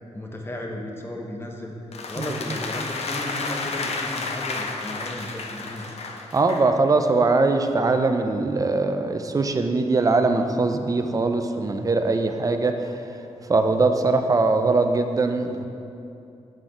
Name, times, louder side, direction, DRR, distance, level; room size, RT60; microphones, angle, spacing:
voice 1, 0.1-1.7 2.1-5.9, left 1 dB, 20° left, 1 dB, 0.8 m, -34 dB
sound 1, 1.9-6.7, left 3 dB, 60° left, 0.6 m, -31 dB
voice 2, 6.3-13.0 13.5-15.7, right 3 dB, 30° right, 6 dB, 0.5 m, -21 dB
7.6 x 4.0 x 5.0 m, 2.6 s
wide cardioid pair, 110°, 12 cm